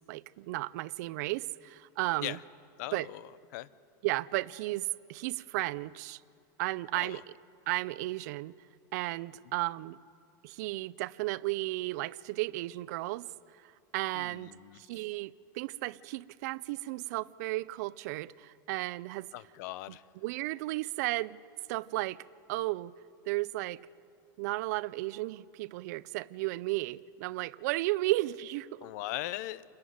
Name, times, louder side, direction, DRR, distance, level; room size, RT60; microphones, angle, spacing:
voice 1, 0.1-2.4 2.9-3.1 4.0-6.2 6.6-7.2 7.7-8.5 8.9-10.0 10.4-13.3 13.6-19.3 19.9-20.0 20.2-21.4 21.7-22.9 23.2-23.8 24.4-28.9, right 19 dB, 55° right, 0.5 m, -34 dB
voice 2, 2.8-3.2 3.5-3.7 6.9-7.2 14.1-14.8 19.3-20.0 28.8-29.6, left 16 dB, 55° left, 0.6 m, -39 dB
28.0 x 11.5 x 9.4 m
supercardioid pair, 170°, 11 cm